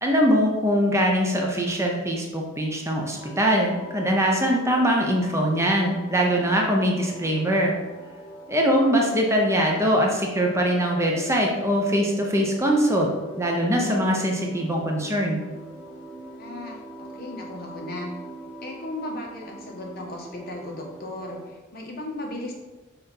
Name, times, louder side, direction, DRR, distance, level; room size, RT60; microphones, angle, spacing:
voice 1, 0.0-7.7 8.5-13.1 13.4-15.4, equal, 15° right, 0 dB, 0.8 m, -22 dB
sound 1, 3.1-21.5, right 1 dB, 75° left, 2.2 m, -42 dB
voice 2, 16.4-18.1 18.6-22.5, left 1 dB, 45° left, 0 dB, 1.3 m, -36 dB
5.7 x 4.2 x 5.5 m, 1.2 s
head